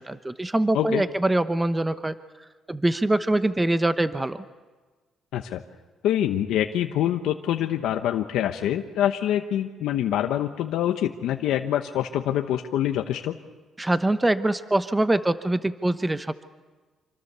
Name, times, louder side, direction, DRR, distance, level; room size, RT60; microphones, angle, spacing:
voice 1, 0.0-2.1 2.7-4.4 13.8-16.4, right 1 dB, 15° right, 11 dB, 1.0 m, -24 dB
voice 2, 6.0-13.4, left 11 dB, 85° left, 5 dB, 1.0 m, -25 dB
26.0 x 25.0 x 6.9 m, 1.3 s
cardioid pair, 90°, 0 cm